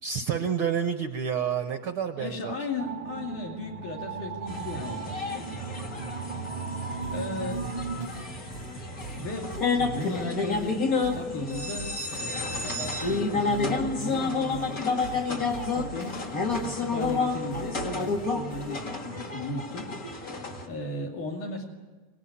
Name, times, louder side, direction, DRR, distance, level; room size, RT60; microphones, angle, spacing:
voice 1, 0.0-2.5, right 7 dB, 65° right, 8 dB, 1.3 m, -29 dB
voice 2, 2.2-5.5 6.4-7.7 9.0-10.9 11.1-16.2 16.6-21.6, left 2 dB, 70° left, -1 dB, 4.0 m, -36 dB
sound 1, 2.8-8.1, right 5 dB, 25° right, 1.2 m, -37 dB
sound 2, 4.5-20.7, left 3 dB, 30° left, 2.1 m, -30 dB
sound 3, 7.0-19.0, right 2 dB, 50° left, 3.3 m, -44 dB
25.5 x 19.0 x 9.8 m, 1.3 s
omnidirectional pair, 3.6 m